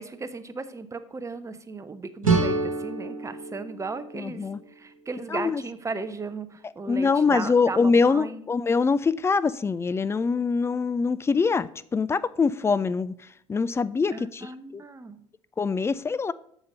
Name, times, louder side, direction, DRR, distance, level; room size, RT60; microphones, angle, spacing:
voice 1, 0.0-8.4 14.1-15.2, right 4 dB, 20° right, 11 dB, 0.7 m, -36 dB
sound 1, 2.2-5.1, right 3 dB, 85° right, 1.3 m, -28 dB
voice 2, 4.1-4.6 5.3-5.6 6.9-13.1 13.5-14.4 14.7-14.8 15.6-16.3, left 4 dB, 15° left, 16 dB, 0.3 m, -24 dB
7.0 x 5.1 x 5.3 m, 0.65 s
figure-of-eight pair, 60°, 17 cm